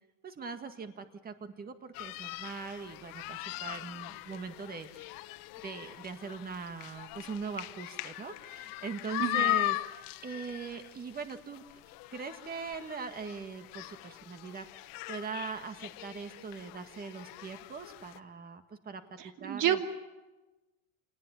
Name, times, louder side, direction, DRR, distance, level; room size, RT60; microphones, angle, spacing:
voice 1, 0.2-5.1 5.6-11.6 12.1-19.8, right 5 dB, 20° right, 8 dB, 1.9 m, -41 dB
sound 1, 1.9-18.2, left 18 dB, 55° left, 1.2 m, -39 dB
voice 2, 9.2-9.6 19.2-19.8, right 11 dB, 45° right, 6 dB, 2.6 m, -30 dB
27.0 x 19.5 x 9.9 m, 1.1 s
supercardioid pair, 140°, 41 cm